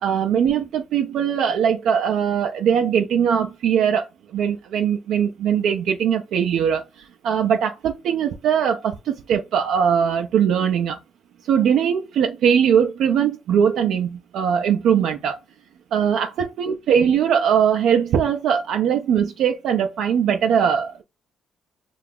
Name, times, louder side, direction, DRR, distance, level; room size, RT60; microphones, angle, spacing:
voice 1, 0.0-4.1 4.3-11.0 11.4-15.4 15.9-21.0, right 8 dB, 80° right, 0.4 m, -20 dB
2.8 x 2.3 x 3.6 m
cardioid pair, 90°, 0 cm